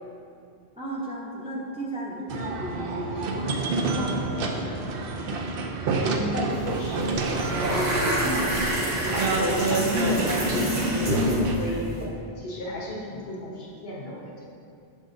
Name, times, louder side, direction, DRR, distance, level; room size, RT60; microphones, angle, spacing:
voice 1, 0.8-4.8 8.2-8.5, right 1 dB, 5° right, -4 dB, 0.6 m, -34 dB
sound 1, 2.3-11.6, right 3 dB, 65° right, 0.7 m, -28 dB
voice 2, 6.1-7.8 8.8-10.6 11.0-11.8 12.4-14.4, equal, 75° left, -4 dB, 1.3 m, -34 dB
sound 2, 6.5-6.7 7.0-12.0, equal, 45° right, 1.1 m, -26 dB
6.2 x 6.2 x 2.6 m, 2.4 s
omnidirectional pair, 1.1 m